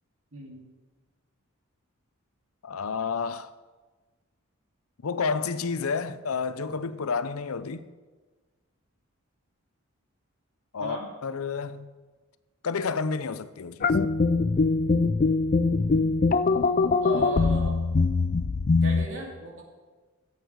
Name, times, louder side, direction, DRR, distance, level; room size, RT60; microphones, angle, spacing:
voice 1, 0.3-0.7 10.8-11.1 17.0-17.7 18.8-19.6, right 1 dB, 65° right, 2.6 m, -35 dB
voice 2, 2.6-3.5 5.0-7.9 10.7-11.9 12.6-14.0, left 5 dB, 85° left, 0.6 m, -30 dB
sound 1, 13.8-19.1, left 3 dB, 40° left, 0.4 m, -23 dB
14.5 x 8.3 x 4.7 m
head